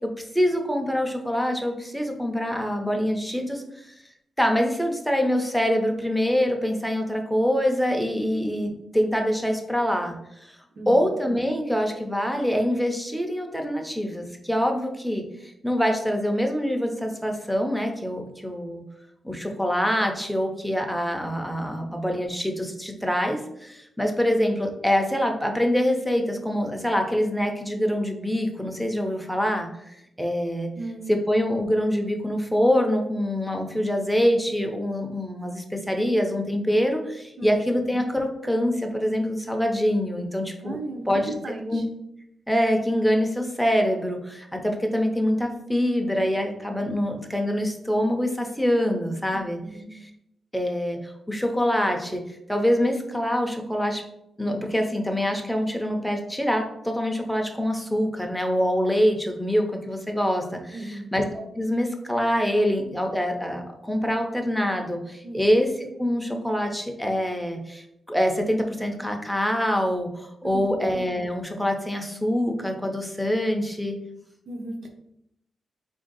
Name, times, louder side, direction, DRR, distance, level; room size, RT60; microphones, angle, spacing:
voice 1, 0.0-3.8 4.4-10.5 10.9-18.8 19.2-30.7 31.1-40.8 41.1-41.3 41.7-41.8 42.5-49.6 50.5-54.0 54.4-74.0, equal, ahead, 2 dB, 0.5 m, -25 dB
voice 2, 10.8-11.1 30.8-31.2 37.4-37.5 40.6-41.8 49.3-49.9 60.7-61.1 65.2-65.5 70.4-70.8 74.5-74.9, right 2 dB, 45° right, 3 dB, 0.7 m, -36 dB
4.5 x 2.6 x 3.8 m, 0.79 s
wide cardioid pair, 165°, 0 cm